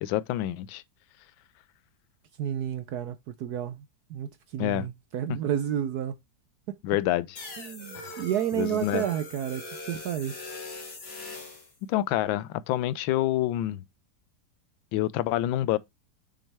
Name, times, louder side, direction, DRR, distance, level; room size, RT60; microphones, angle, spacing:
voice 1, 0.0-0.8 4.6-4.8 6.8-7.4 7.9-8.2 8.6-9.0 11.9-13.8 14.9-15.8, left 14 dB, 85° left, 1.4 m, -27 dB
voice 2, 2.4-3.8 4.1-6.2 7.6-10.4, right 10 dB, 70° right, 1.0 m, -31 dB
sound 1, 7.4-11.7, left 2 dB, 55° left, 2.2 m, -41 dB
6.3 x 6.2 x 3.3 m
omnidirectional pair, 2.1 m